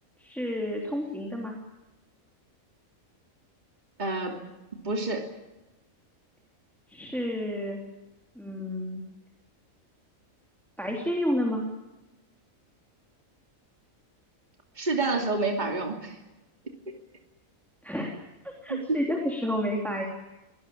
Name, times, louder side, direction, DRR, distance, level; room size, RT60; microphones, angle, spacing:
voice 1, 0.2-1.5 6.9-7.8 8.3-9.0 10.8-11.6 17.8-18.1 18.4-20.1, equal, ahead, 0 dB, 3.4 m, -30 dB
voice 2, 4.0-4.4 4.8-5.3 14.8-16.2 18.7-19.0, right 3 dB, 30° right, 2 dB, 3.0 m, -28 dB
25.0 x 19.0 x 8.8 m, 1.0 s
omnidirectional pair, 1.4 m